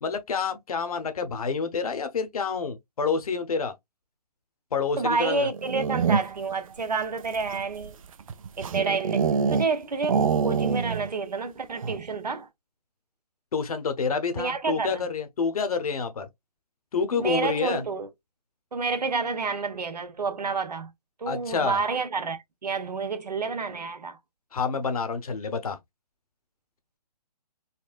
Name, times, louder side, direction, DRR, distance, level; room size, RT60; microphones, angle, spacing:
voice 1, 0.0-3.7 4.7-5.5 13.5-16.3 16.9-17.8 21.3-21.8 24.5-25.8, left 5 dB, 60° left, 0.9 m, -28 dB
voice 2, 5.0-8.0 8.6-12.5 14.4-15.0 17.2-18.1 18.7-20.9 21.2-24.2, right 4 dB, 85° right, 0.9 m, -29 dB
sound 1, 5.5-6.5 7.2-9.7 10.0-11.1 11.4-11.5 11.8-12.1, right 6 dB, 55° right, 0.5 m, -26 dB
4.1 x 2.1 x 2.4 m
figure-of-eight pair, 145°, 20 cm